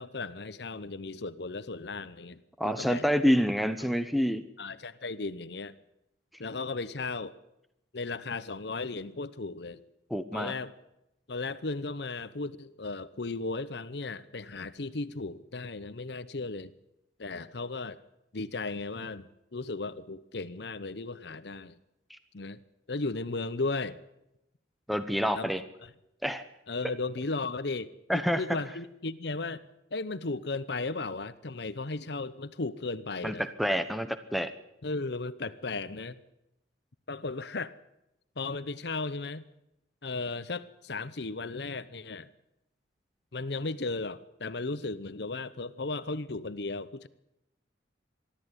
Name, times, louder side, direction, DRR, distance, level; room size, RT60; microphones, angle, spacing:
voice 1, 0.0-2.4 2.6-3.1 4.6-5.7 6.4-7.3 7.9-9.8 10.3-10.7 11.3-16.7 17.2-18.0 18.3-21.8 22.3-22.6 22.9-24.0 25.3-25.5 26.7-29.6 29.9-33.5 34.8-36.2 37.1-37.7 38.4-39.4 40.0-42.3 43.3-47.1, left 3 dB, 65° left, 15 dB, 0.9 m, -35 dB
voice 2, 2.6-4.4 10.1-10.5 22.1-22.2 24.9-25.6 26.2-26.4 28.1-28.4 33.2-34.5, equal, ahead, 11 dB, 0.9 m, -27 dB
23.0 x 13.0 x 9.8 m, 0.86 s
head